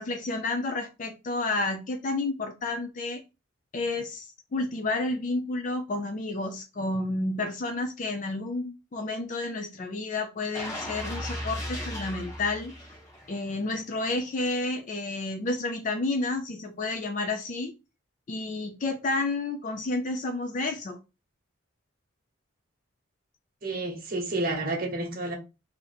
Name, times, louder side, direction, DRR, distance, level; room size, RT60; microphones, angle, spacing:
voice 1, 0.0-3.2 3.7-12.7 13.3-17.7 18.3-21.0, left 2 dB, 40° left, 0.4 m, -30 dB
sound 1, 10.5-13.5 13.9-14.1, left 1 dB, 15° left, 1.1 m, -36 dB
voice 2, 23.6-25.4, right 2 dB, 45° right, 1.0 m, -30 dB
2.9 x 2.7 x 3.9 m
head